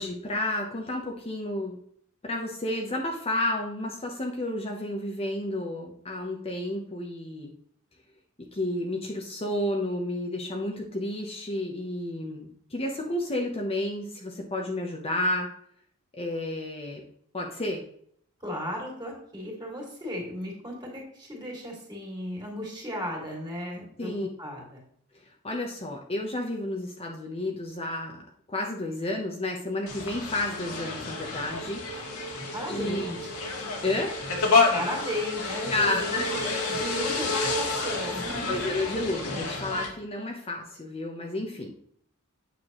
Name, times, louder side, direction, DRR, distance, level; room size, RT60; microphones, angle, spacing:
voice 1, 0.0-1.8 2.2-7.5 8.5-15.5 16.1-17.0 17.3-17.8 24.0-24.3 25.4-28.2 28.5-31.8 32.7-33.1 33.8-34.1 35.7-36.3 38.5-41.7, left 1 dB, 25° left, 0 dB, 0.9 m, -31 dB
voice 2, 18.4-24.1 24.4-24.8 32.3-33.3 34.7-38.6, left 1 dB, 20° right, -1 dB, 2.7 m, -35 dB
sound 1, 29.9-39.9, left 3 dB, 75° left, 1.8 m, -29 dB
8.7 x 6.8 x 3.1 m, 0.65 s
head